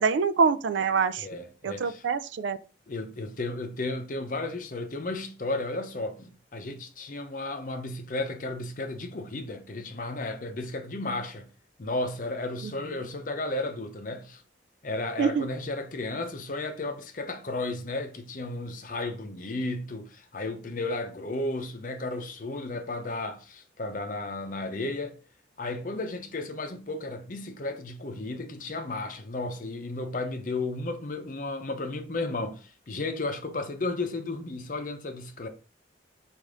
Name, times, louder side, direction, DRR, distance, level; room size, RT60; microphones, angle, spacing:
voice 1, 0.0-1.3 1.6-2.6 15.2-15.5, right 5 dB, 85° right, 0.4 m, -25 dB
voice 2, 1.2-2.1 2.9-11.5 11.8-14.4 14.8-25.2 25.6-35.5, left 2 dB, 45° left, 0.6 m, -33 dB
5.0 x 2.6 x 3.7 m
head